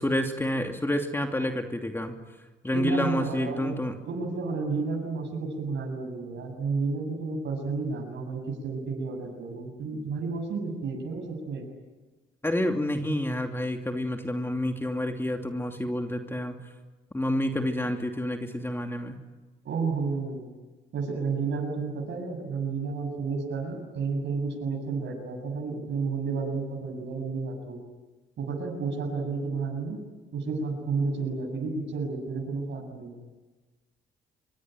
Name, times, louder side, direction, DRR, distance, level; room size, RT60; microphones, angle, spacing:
voice 1, 0.0-2.1 2.6-3.9 12.4-16.6 17.1-19.2, left 1 dB, 10° left, 4 dB, 2.8 m, -28 dB
voice 2, 2.7-3.7 4.1-11.6 19.6-20.5 20.9-27.8 28.4-30.0 30.3-33.2, right 4 dB, 65° right, 1 dB, 7.6 m, -31 dB
25.5 x 24.0 x 9.3 m, 1.2 s
cardioid pair, 90°, 20 cm